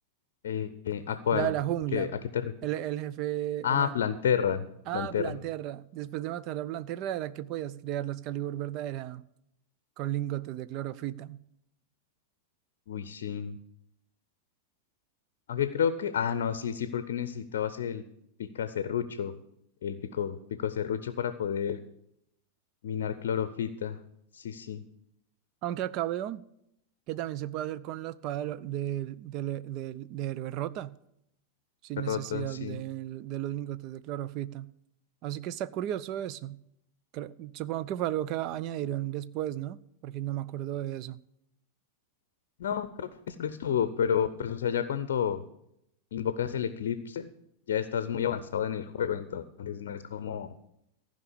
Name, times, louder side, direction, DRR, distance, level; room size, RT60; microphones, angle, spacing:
voice 1, 0.4-1.5 1.9-2.1 2.3-2.5 3.6-4.7 4.9-5.3 12.9-13.6 15.5-18.0 18.4-19.3 19.8-21.8 22.8-24.0 24.3-24.8 32.0-32.8 42.6-45.4 46.1-47.3 47.7-50.5, left 8 dB, 60° left, 0.6 m, -30 dB
voice 2, 1.3-2.2 2.6-3.9 4.9-9.2 10.0-11.4 25.6-26.4 27.1-31.0 31.8-34.7 35.2-36.6 37.1-41.2, right 13 dB, 40° right, 0.5 m, -34 dB
14.5 x 5.3 x 8.4 m
figure-of-eight pair, 90°, 0 cm